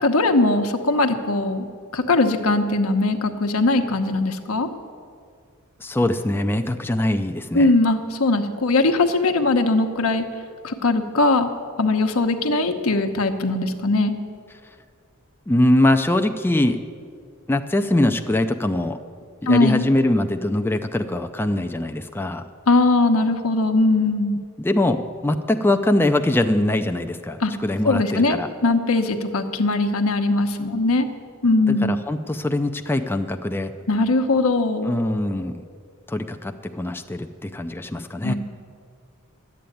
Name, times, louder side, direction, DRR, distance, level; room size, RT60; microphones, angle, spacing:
voice 1, 0.0-1.7 1.9-4.7 7.5-10.2 10.6-11.5 11.8-14.1 19.5-19.8 22.7-24.4 27.4-27.5 27.8-31.1 31.4-31.9 33.9-34.9 38.2-38.3, left 2 dB, 75° left, 6 dB, 1.0 m, -20 dB
voice 2, 5.8-7.7 15.5-16.8 17.5-19.0 19.4-22.4 24.6-28.5 31.7-33.7 34.8-35.6 36.1-38.3, left 1 dB, 10° left, 6 dB, 0.4 m, -22 dB
11.5 x 8.5 x 9.2 m, 2.1 s
head